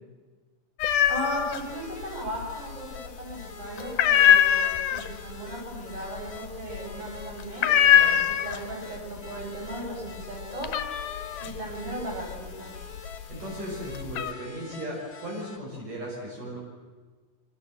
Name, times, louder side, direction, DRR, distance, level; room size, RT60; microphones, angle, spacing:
sound 1, 0.8-1.6 1.9-2.7 3.1-3.4 3.8-8.9 9.2-9.7 10.1-13.2 13.7-14.3, left 10 dB, 75° left, 2.7 m, -22 dB
voice 1, 1.1-7.7 8.3-10.8 11.4-12.8, right 1 dB, 40° right, -2 dB, 8.9 m, -37 dB
sound 2, 1.6-15.6, left 4 dB, 20° left, 2.7 m, -46 dB
voice 2, 13.0-16.6, equal, 70° right, -2 dB, 8.1 m, -37 dB
27.0 x 26.0 x 7.8 m, 1.4 s
omnidirectional pair, 3.9 m